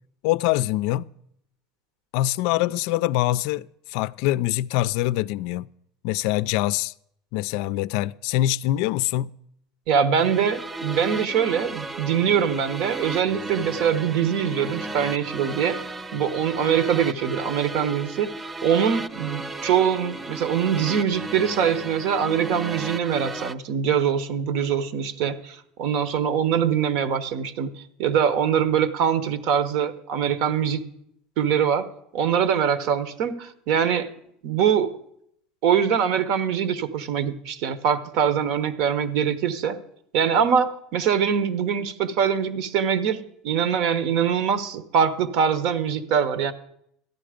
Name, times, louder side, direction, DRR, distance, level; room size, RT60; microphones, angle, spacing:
voice 1, 0.2-1.1 2.1-5.7 6.0-6.9 7.3-9.3, left 15 dB, 70° left, 0.4 m, -24 dB
voice 2, 9.9-15.8 16.1-18.3 18.6-30.8 31.4-31.9 32.1-34.1 34.4-34.9 35.6-39.8 40.1-46.5, right 8 dB, 65° right, 1.1 m, -23 dB
sound 1, 10.2-23.5, right 2 dB, 15° right, 0.4 m, -34 dB
13.5 x 10.5 x 5.1 m
supercardioid pair, 130°, 0 cm